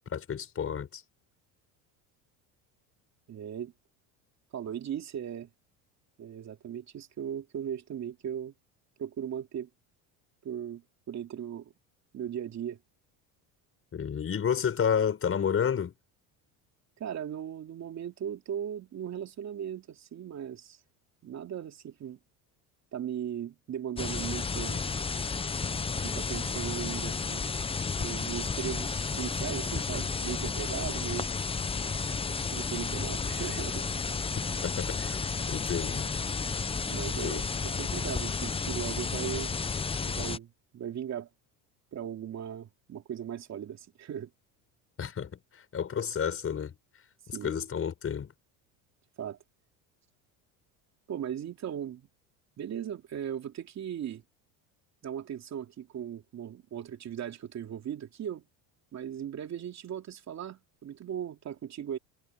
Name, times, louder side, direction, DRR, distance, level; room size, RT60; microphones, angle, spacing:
voice 1, 0.1-1.0 13.9-15.9 34.6-35.1 35.5-36.1 37.2-37.4 45.0-46.7 47.3-48.3, left 7 dB, 35° left, 5.7 m, -30 dB
voice 2, 3.3-3.7 4.5-5.5 6.2-8.5 9.0-9.7 10.4-11.7 12.1-12.8 17.0-20.8 21.2-22.2 22.9-24.8 26.0-27.4 28.0-31.3 32.5-33.8 36.9-39.5 40.0-41.3 41.9-44.3 47.3-47.6 49.2-49.4 51.1-52.1 52.6-54.2 55.0-58.4 58.9-62.0, right 9 dB, 40° right, 2.9 m, -38 dB
sound 1, 24.0-40.4, left 5 dB, 15° left, 0.8 m, -32 dB
cardioid pair, 120°, 41 cm